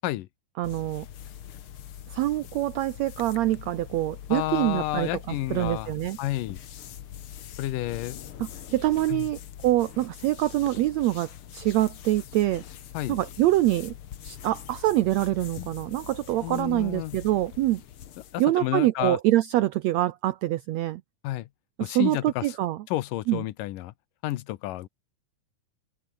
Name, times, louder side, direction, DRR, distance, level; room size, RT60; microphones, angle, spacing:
sound 1, 0.6-18.4, left 10 dB, 60° left, 1.5 m, -43 dB
voice 1, 0.6-1.1 2.1-6.2 8.4-12.6 13.1-13.9 14.2-17.8 18.4-21.0 21.8-22.8 23.3-23.4, right 15 dB, 80° right, 1.5 m, -25 dB
voice 2, 4.3-5.9 6.2-6.6 7.6-8.2 9.1-9.3 12.9-13.2 16.4-17.1 18.3-19.2 21.2-21.5 21.8-22.5 22.9-23.9 24.2-24.9, left 15 dB, 80° left, 2.5 m, -30 dB
omnidirectional pair, 3.9 m